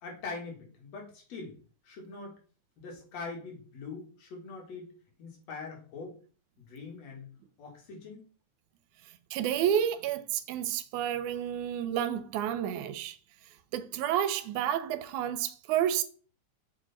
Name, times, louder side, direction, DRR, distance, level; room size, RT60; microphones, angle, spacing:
voice 1, 0.0-1.5 1.8-2.4 2.8-4.9 5.2-6.2 6.6-7.3 7.6-8.2, left 4 dB, 65° left, 2.9 m, -42 dB
voice 2, 9.3-13.2 13.7-16.0, right 10 dB, 80° right, 2.1 m, -30 dB
6.3 x 4.9 x 4.2 m
omnidirectional pair, 3.5 m